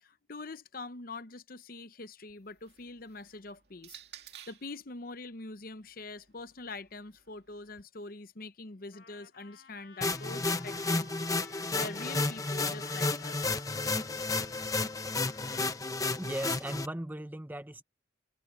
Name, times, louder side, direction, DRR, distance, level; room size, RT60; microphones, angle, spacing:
voice 1, 0.0-4.0 4.5-11.3 11.7-13.6, left 3 dB, 50° left, 0.8 m, -44 dB
sound 1, 2.3-4.8 5.7-7.8, right 10 dB, 60° right, 2.4 m, -55 dB
Trumpet, 8.9-16.0, left 5 dB, 75° left, 2.9 m, -55 dB
sound 2, 10.0-16.9, left 3 dB, 20° left, 0.9 m, -32 dB
voice 2, 16.2-17.8, right 1 dB, 10° right, 0.8 m, -37 dB
head